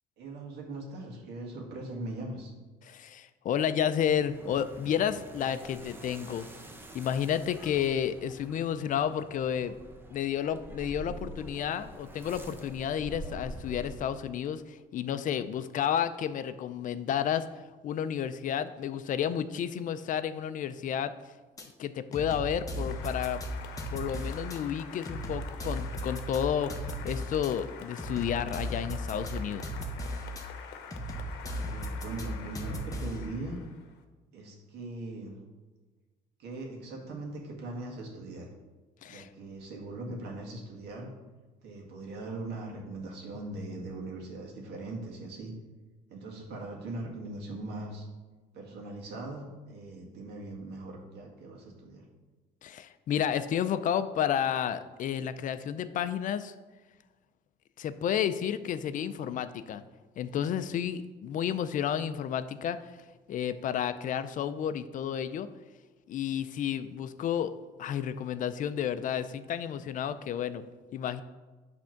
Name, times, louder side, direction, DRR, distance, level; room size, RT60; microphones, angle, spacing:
voice 1, 0.2-2.5 31.6-33.6 34.3-35.4 36.4-38.5 39.1-41.1 41.6-45.5 46.1-48.1 48.5-52.0, right 2 dB, 80° right, 0 dB, 1.8 m, -40 dB
voice 2, 2.8-6.5 6.9-9.7 10.1-17.5 17.8-21.1 21.8-23.4 23.9-26.7 27.0-29.7 39.0-39.3 52.6-56.5 57.8-59.8 60.2-62.9 63.3-65.5 66.1-67.5 67.8-70.7 70.9-71.2, left 9 dB, 50° left, 12 dB, 0.4 m, -31 dB
sound 1, 4.0-14.4, right 1 dB, 15° right, 0.8 m, -46 dB
sound 2, 21.6-21.7 22.1-24.6 25.0-27.5 28.0-30.4 30.9-33.3, right 1 dB, 20° left, 1.0 m, -37 dB
Applause, 22.5-34.0, left 6 dB, 90° left, 0.8 m, -46 dB
7.6 x 3.5 x 5.8 m, 1.3 s
cardioid pair, 110°, 17 cm